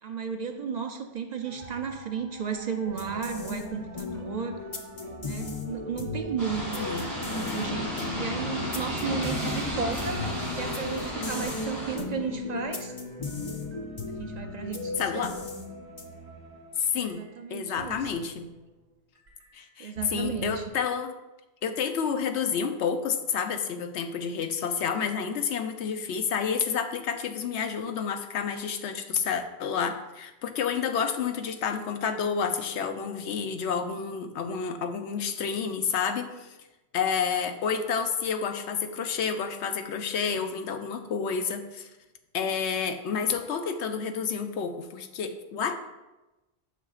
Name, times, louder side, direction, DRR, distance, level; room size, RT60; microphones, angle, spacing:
voice 1, 0.0-4.6 5.2-6.9 7.2-10.2 10.5-12.9 14.1-15.4 17.0-18.1 19.8-20.6, right 6 dB, 55° right, 5 dB, 0.5 m, -34 dB
sound 1, 1.4-18.9 19.2-20.7, right 2 dB, 80° right, 1.5 m, -46 dB
sound 2, 2.9-16.3, left 3 dB, 35° left, 0.6 m, -37 dB
sound 3, 6.4-12.0, equal, 15° right, 2.0 m, -33 dB
voice 2, 15.0-15.3 16.8-17.2 17.5-18.5 19.5-21.1 21.6-36.6 36.9-41.9 42.3-45.7, left 6 dB, 85° left, 7 dB, 0.9 m, -29 dB
8.9 x 6.1 x 2.4 m, 1.0 s
omnidirectional pair, 1.1 m